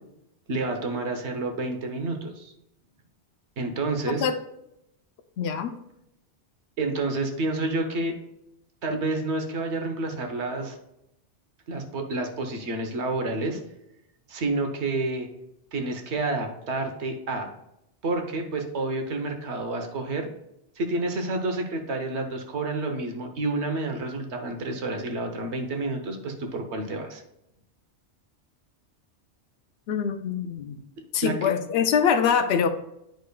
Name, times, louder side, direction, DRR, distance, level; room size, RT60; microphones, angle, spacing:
voice 1, 0.5-2.5 3.6-4.3 6.8-8.1 8.8-10.8 11.7-13.6 14.3-15.3 15.7-17.5 18.0-20.3 20.8-27.2 31.2-31.3, right 2 dB, 75° right, 4 dB, 1.2 m, -29 dB
voice 2, 5.4-5.8 29.9-30.8 31.1-32.7, left 7 dB, 70° left, 7 dB, 0.8 m, -24 dB
8.9 x 5.1 x 2.2 m, 0.82 s
omnidirectional pair, 1.2 m